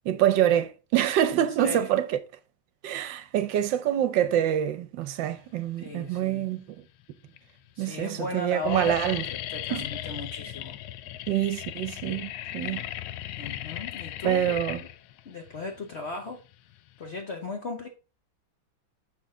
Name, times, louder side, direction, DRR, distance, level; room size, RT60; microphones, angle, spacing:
voice 1, 0.0-2.2 2.8-6.6 7.8-9.2 9.7-9.9 11.3-12.9 14.2-14.8, right 11 dB, 75° right, 1.3 m, -26 dB
voice 2, 1.4-1.9 5.8-6.5 7.7-10.8 13.4-14.5 15.2-16.4 17.0-17.9, left 3 dB, 50° left, 0.9 m, -36 dB
sound 1, 6.0-6.6 7.3-7.4 7.6-8.0 8.3-17.2, left 13 dB, 85° left, 1.4 m, -37 dB
7.0 x 6.1 x 3.6 m
omnidirectional pair, 2.2 m